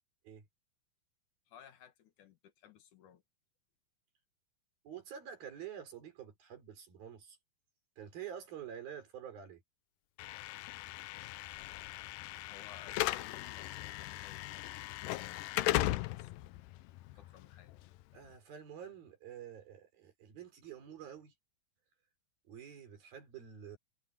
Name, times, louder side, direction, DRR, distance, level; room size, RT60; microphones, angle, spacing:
voice 1, 1.5-3.2 12.5-17.7, left 9 dB, 60° left, 3.0 m, -59 dB
voice 2, 4.8-7.4 8.0-9.6 18.1-21.3 22.5-23.8, right 9 dB, 70° right, 5.9 m, -48 dB
Slam / Alarm, 10.2-18.3, left 16 dB, 80° left, 2.1 m, -38 dB
omnidirectional pair, 4.3 m